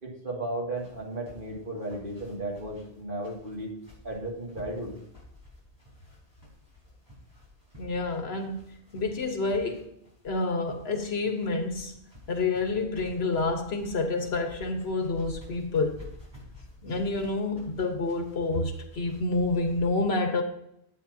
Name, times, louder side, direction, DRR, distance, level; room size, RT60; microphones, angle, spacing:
voice 1, 0.0-3.7 4.0-4.9, right 1 dB, 55° right, -2 dB, 2.6 m, -35 dB
sound 1, 0.7-19.9, left 2 dB, 25° right, 4.5 m, -51 dB
voice 2, 7.8-9.9 10.2-12.0 12.3-16.0 16.8-20.4, left 3 dB, 75° left, 5 dB, 1.5 m, -28 dB
12.0 x 8.6 x 2.8 m, 0.76 s
omnidirectional pair, 1.1 m